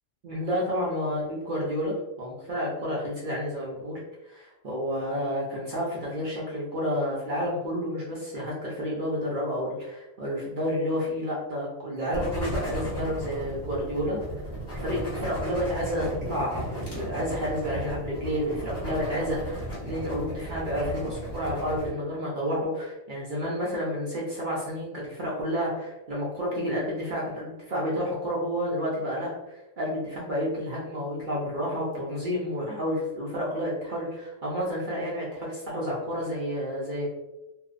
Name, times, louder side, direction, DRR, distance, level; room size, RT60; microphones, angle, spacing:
voice 1, 0.2-14.2 14.8-37.1, equal, 55° right, -5 dB, 0.5 m, -30 dB
sound 1, 12.1-21.9, equal, 20° left, 0.9 m, -35 dB
2.6 x 2.0 x 2.4 m, 0.99 s
omnidirectional pair, 1.4 m